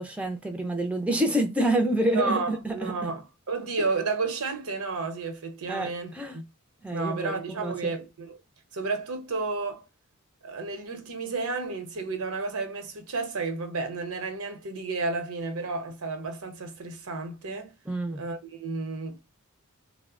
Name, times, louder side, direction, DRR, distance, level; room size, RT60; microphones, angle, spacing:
voice 1, 0.0-3.1 3.8-3.9 5.7-6.4 6.8-8.0 17.9-18.2, right 1 dB, 5° right, 0.4 m, -28 dB
voice 2, 2.1-3.2 3.5-6.4 6.9-8.4 8.7-9.9 10.4-17.7 18.1-19.2, right 3 dB, 85° right, 0.8 m, -32 dB
3.4 x 2.0 x 2.3 m
head